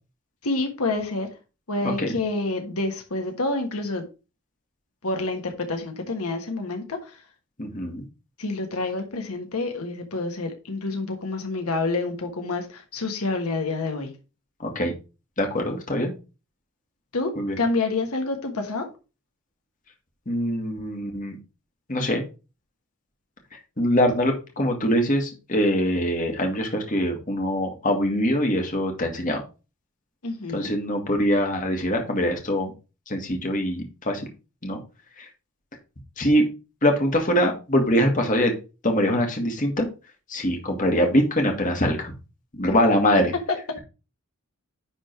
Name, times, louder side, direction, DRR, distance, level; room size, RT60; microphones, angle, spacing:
voice 1, 0.4-1.3 1.7-4.1 5.0-7.1 8.4-14.1 17.1-18.9 30.2-30.7 42.7-42.8 43.3-43.4, left 3 dB, 90° left, 1.5 m, -28 dB
voice 2, 7.6-8.0 14.6-14.9 15.4-16.1 17.4-17.6 20.3-21.4 21.9-22.2 23.8-29.4 30.5-32.7 33.1-34.2 34.6-34.8 36.2-36.4 36.8-38.5 38.8-39.9 40.3-42.1 42.6-43.3, equal, 35° left, 1.8 m, -23 dB
10.5 x 3.7 x 4.5 m
head